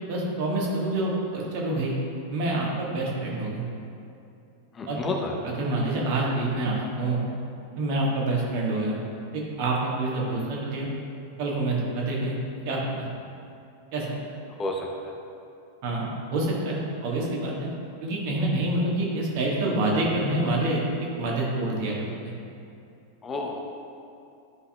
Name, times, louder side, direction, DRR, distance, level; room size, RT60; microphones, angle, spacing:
voice 1, 0.1-1.9 2.3-3.7 4.9-5.0 5.6-7.2 7.8-9.0 9.3-10.9 11.4-12.4 12.6-13.1 13.9-14.0 15.8-17.7 18.0-22.1, right 2 dB, 45° right, -3 dB, 1.5 m, -27 dB
voice 2, 4.7-5.4 14.6-15.1 23.2-23.7, left 2 dB, 25° left, 1 dB, 0.7 m, -31 dB
11.0 x 5.6 x 2.3 m, 2.6 s
figure-of-eight pair, 90°, 0 cm